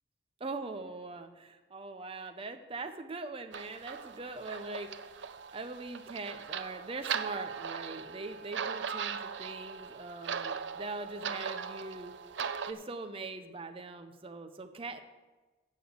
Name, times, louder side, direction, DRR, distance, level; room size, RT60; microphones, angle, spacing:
voice 1, 0.4-4.9 5.5-12.1 12.7-15.0, right 3 dB, 30° right, 7 dB, 0.6 m, -42 dB
sound 1, 3.5-12.7, right 6 dB, 70° right, 0.6 m, -39 dB
8.3 x 7.0 x 7.8 m, 1.2 s
head